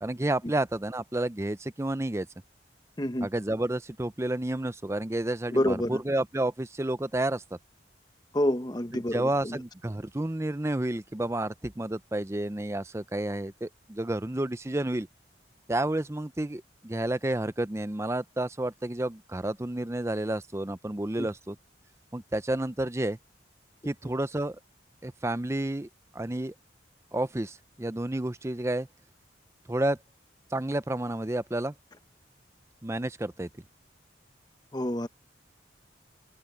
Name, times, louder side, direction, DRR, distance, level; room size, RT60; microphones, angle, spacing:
voice 1, 0.0-2.3 3.2-7.6 8.9-15.1 15.7-21.6 22.1-23.2 23.8-24.6 25.0-25.9 26.1-26.5 27.1-28.9 29.7-30.0 30.5-31.7 32.8-33.5, right 1 dB, 15° right, 0.5 m, -30 dB
voice 2, 3.0-3.3 5.5-6.0 8.3-9.6 21.2-21.3 34.7-35.1, left 1 dB, 20° left, 1.1 m, -28 dB
head